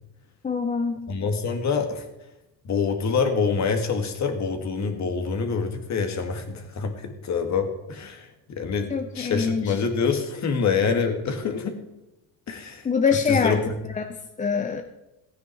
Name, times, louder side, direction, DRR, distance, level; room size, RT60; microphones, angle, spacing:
voice 1, 0.4-1.0 8.9-9.7 12.8-13.6 14.0-14.8, left 5 dB, 20° left, 6 dB, 0.7 m, -24 dB
voice 2, 1.1-2.1 2.7-11.8 12.5-12.9 13.3-13.8, left 5 dB, 40° left, 6 dB, 1.9 m, -26 dB
15.5 x 9.3 x 4.6 m, 0.97 s
cardioid pair, 120°, 42 cm